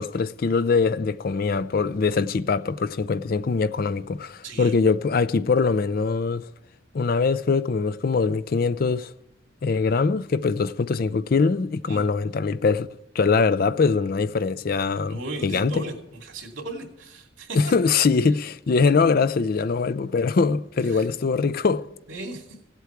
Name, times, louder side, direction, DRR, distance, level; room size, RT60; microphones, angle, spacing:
voice 1, 0.0-6.5 6.9-9.1 9.6-12.9 13.1-15.8 17.5-21.9, left 4 dB, 45° left, 0.4 m, -22 dB
voice 2, 4.4-4.7 11.9-12.1 15.1-15.9 16.2-17.6 20.8-21.1 22.1-22.5, right 2 dB, 70° right, 2.7 m, -36 dB
17.0 x 8.3 x 4.6 m
head